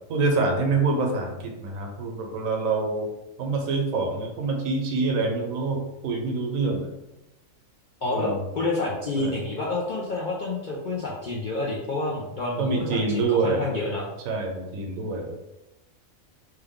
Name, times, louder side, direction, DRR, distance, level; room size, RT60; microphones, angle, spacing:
voice 1, 0.1-3.1 3.4-6.9 8.0-8.4 9.1-9.4 12.6-13.7 14.3-15.4, right 3 dB, 80° right, 2 dB, 1.0 m, -26 dB
voice 2, 8.0-14.0, left 2 dB, 65° left, -5 dB, 0.4 m, -29 dB
3.1 x 2.2 x 3.5 m, 0.94 s
omnidirectional pair, 1.4 m